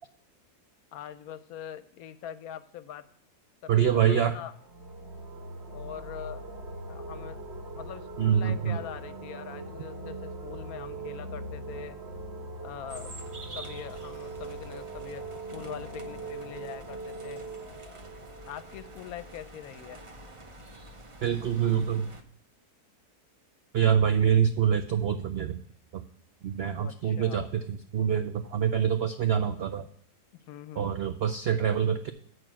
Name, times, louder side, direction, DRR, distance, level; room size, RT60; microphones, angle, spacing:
voice 1, 0.9-3.1 3.6-4.5 5.7-6.5 6.9-7.4 7.7-12.0 12.6-13.1 13.5-17.4 18.5-20.0 26.8-27.4 30.5-30.9, left 10 dB, 70° left, 14 dB, 1.0 m, -43 dB
voice 2, 3.7-4.4 8.2-8.8 21.2-22.1 23.7-25.6 25.9-26.0 26.4-29.9 30.8-32.1, right 8 dB, 75° right, 9 dB, 0.5 m, -25 dB
sound 1, 4.5-20.0, right 2 dB, 45° right, 1.7 m, -41 dB
sound 2, 12.9-22.2, right 1 dB, 30° right, 0.6 m, -47 dB
9.0 x 4.8 x 7.3 m, 0.64 s
omnidirectional pair, 1.7 m